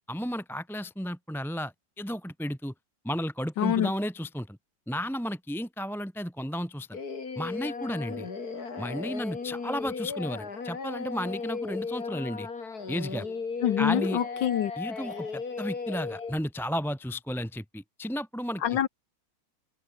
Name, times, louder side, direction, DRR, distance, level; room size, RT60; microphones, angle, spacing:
voice 1, 0.1-2.7 3.0-4.6 4.9-7.0 7.4-8.3 8.8-12.5 12.9-13.3 13.8-14.2 14.8-18.6, equal, ahead, 2.0 m, -33 dB
voice 2, 3.6-3.9 13.6-14.7 18.6-18.9, left 11 dB, 75° left, 1.6 m, -25 dB
Singing, 6.9-16.3, left 4 dB, 55° left, 3.1 m, -36 dB
omnidirectional pair, 2.0 m